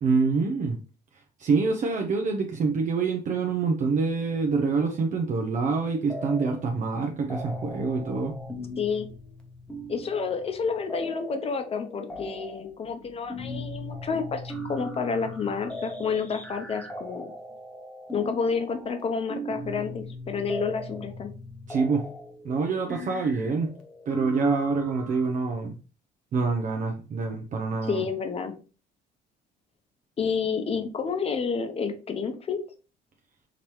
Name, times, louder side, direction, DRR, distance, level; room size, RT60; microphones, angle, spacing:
voice 1, 0.0-0.8 1.4-8.4 21.7-22.1 22.4-23.7 24.1-25.8 26.3-28.0, right 4 dB, 45° right, 3 dB, 0.7 m, -26 dB
sound 1, 6.1-6.7 7.0-25.3, left 1 dB, 5° left, 0.9 m, -39 dB
voice 2, 8.8-9.1 9.9-17.3 18.1-21.3 27.9-28.6 30.2-32.6, left 5 dB, 35° left, 6 dB, 0.8 m, -29 dB
5.1 x 2.9 x 3.1 m, 0.35 s
cardioid pair, 110°, 17 cm